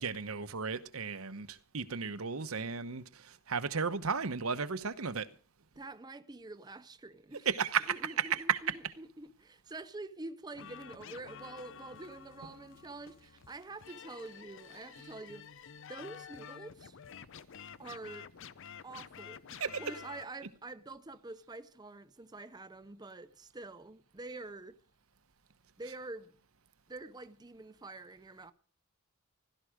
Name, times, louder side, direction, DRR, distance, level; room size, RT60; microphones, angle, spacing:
voice 1, 0.0-5.3 7.4-8.9 19.6-19.7, right 6 dB, 75° right, 1.0 m, -34 dB
voice 2, 5.8-7.5 7.9-15.5 15.9-17.0 17.8-18.3 18.8-24.8 25.8-26.4 26.9-28.5, right 2 dB, 20° right, 0.6 m, -47 dB
sound 1, 10.5-20.2, left 7 dB, 60° left, 0.6 m, -50 dB
16.5 x 12.5 x 5.0 m
head